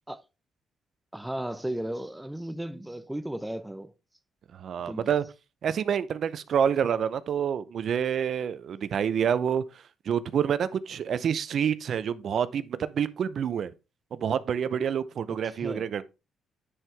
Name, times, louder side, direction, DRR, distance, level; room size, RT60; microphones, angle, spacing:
voice 1, 1.1-3.9 4.9-5.1 15.4-15.9, right 1 dB, 5° right, 0.6 m, -35 dB
voice 2, 4.6-5.2 5.6-9.6 10.1-13.7 14.1-16.0, right 8 dB, 60° right, 0.6 m, -27 dB
9.9 x 4.6 x 3.3 m
cardioid pair, 90°, 0 cm